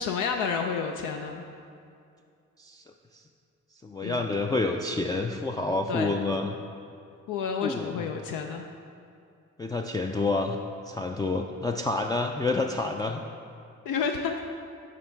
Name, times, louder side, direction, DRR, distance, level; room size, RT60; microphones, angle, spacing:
voice 1, 0.0-1.4 4.0-4.3 5.9-6.1 7.3-8.6 13.9-14.4, left 6 dB, 75° left, 3 dB, 0.5 m, -30 dB
voice 2, 3.8-6.6 7.6-8.1 9.6-10.6 10.9-13.2, left 3 dB, 15° left, 2 dB, 0.3 m, -28 dB
7.5 x 3.7 x 4.4 m, 2.4 s
supercardioid pair, 50°, 32 cm